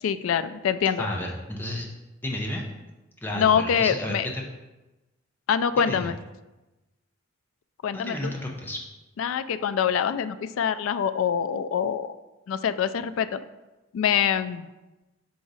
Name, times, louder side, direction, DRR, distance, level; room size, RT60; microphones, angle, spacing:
voice 1, 0.0-1.1 3.3-4.3 5.5-6.2 7.8-8.3 9.2-12.2 12.5-13.4 13.9-14.7, left 8 dB, 85° left, 13 dB, 0.3 m, -25 dB
voice 2, 1.0-1.9 2.2-2.6 3.2-4.4 5.9-6.1 7.9-8.8, left 1 dB, 10° left, -1 dB, 0.6 m, -32 dB
5.1 x 4.7 x 4.0 m, 1.1 s
head